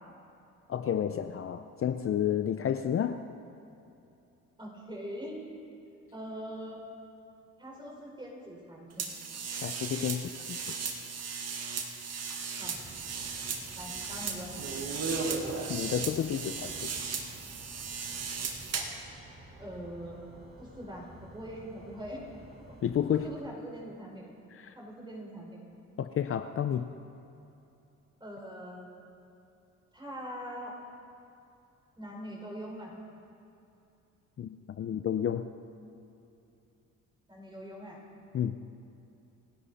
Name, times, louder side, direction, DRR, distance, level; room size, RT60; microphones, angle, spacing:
voice 1, 0.7-3.2 9.6-10.6 15.4-16.9 22.8-23.3 24.5-24.8 26.0-26.9 34.4-35.5 38.3-38.6, left 9 dB, 45° left, 9 dB, 0.6 m, -31 dB
voice 2, 4.6-5.4 6.1-6.8 7.6-9.1 12.6-12.7 13.7-14.5 19.6-20.2 20.6-22.3 23.1-24.3 24.7-25.6 28.2-28.9 29.9-30.7 32.0-32.9 37.3-38.0, equal, 15° right, -2 dB, 4.9 m, -42 dB
sound 1, 9.0-19.0, right 5 dB, 55° right, 1.9 m, -36 dB
sound 2, 12.6-23.4, right 1 dB, 35° right, 3.3 m, -52 dB
29.0 x 11.0 x 4.2 m, 2.8 s
cardioid pair, 90°, 30 cm